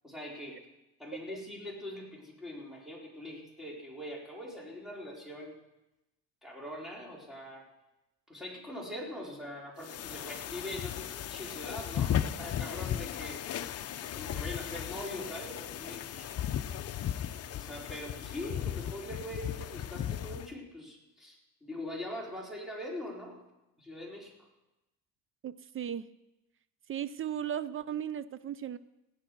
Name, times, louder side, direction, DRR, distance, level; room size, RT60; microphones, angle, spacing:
voice 1, 0.0-0.6 1.0-5.5 6.4-7.7 8.3-13.4 14.0-16.4 17.5-23.4 23.8-24.3, left 1 dB, ahead, -3 dB, 4.0 m, -42 dB
sound 1, 9.8-20.5, left 10 dB, 45° left, 0.7 m, -36 dB
voice 2, 25.4-26.1 26.9-28.8, right 9 dB, 35° right, 16 dB, 0.6 m, -36 dB
16.5 x 10.5 x 6.1 m, 0.96 s
cardioid pair, 110°, 34 cm